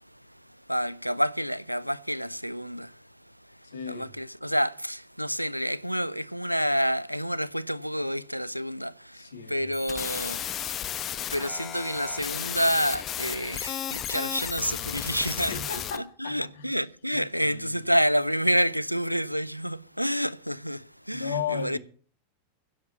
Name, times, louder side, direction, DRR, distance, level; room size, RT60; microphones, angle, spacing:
voice 1, 0.7-3.0 3.5-3.6 3.9-10.4 11.3-15.5 16.2-21.8, equal, 90° right, 0.5 m, -28 dB
voice 2, 3.6-4.1 9.1-9.8 15.5-16.7 17.1-18.0 21.1-21.8, left 6 dB, 65° left, 2.7 m, -36 dB
sound 1, 9.7-16.0, left 10 dB, 30° left, 1.1 m, -34 dB
16.0 x 7.1 x 7.2 m
figure-of-eight pair, 90°, 0 cm